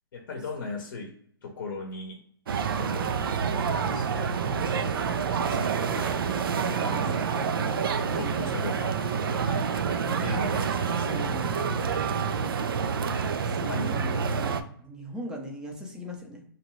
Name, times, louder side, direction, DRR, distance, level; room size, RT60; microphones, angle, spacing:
voice 1, 0.1-1.1 1.4-2.2 2.5-3.1 3.5-4.3 4.7-6.2 6.7-7.6 8.1-11.2 13.7-13.9, left 3 dB, 55° left, 1 dB, 0.7 m, -39 dB
sound 1, 2.5-14.6, right 6 dB, 65° right, 0.4 m, -28 dB
voice 2, 6.6-7.4 8.0-8.6 10.9-11.8 12.8-16.4, equal, 5° right, 0 dB, 0.5 m, -40 dB
2.7 x 2.2 x 3.0 m, 0.64 s
hypercardioid pair, 145°, 13 cm